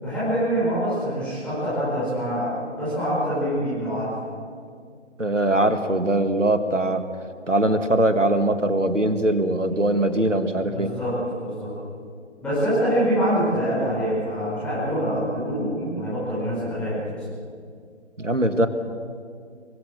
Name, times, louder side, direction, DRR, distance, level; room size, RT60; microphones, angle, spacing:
voice 1, 0.0-4.1 10.6-11.7 12.4-17.2, equal, 5° left, -12 dB, 5.5 m, -25 dB
voice 2, 5.2-7.1 7.5-10.9 18.2-18.7, right 1 dB, 85° right, 9 dB, 1.9 m, -21 dB
25.0 x 16.5 x 6.7 m, 2.2 s
figure-of-eight pair, 145°, 36 cm